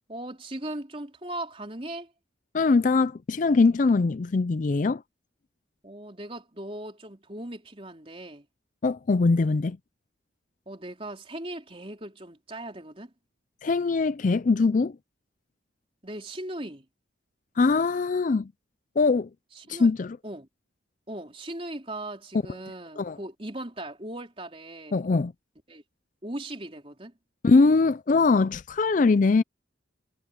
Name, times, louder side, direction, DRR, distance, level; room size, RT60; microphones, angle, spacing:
voice 1, 0.1-2.1 5.8-8.5 10.7-13.1 16.0-16.9 19.6-19.9 20.2-20.5 21.1-25.0 25.7-25.8 26.2-27.1, right 1 dB, 30° right, 3.9 m, -38 dB
voice 2, 2.5-5.0 8.8-9.8 13.6-15.0 17.6-18.5 19.0-19.3 19.7-20.2 23.0-23.2 24.9-25.3 27.4-29.4, left 4 dB, 40° left, 0.4 m, -22 dB
head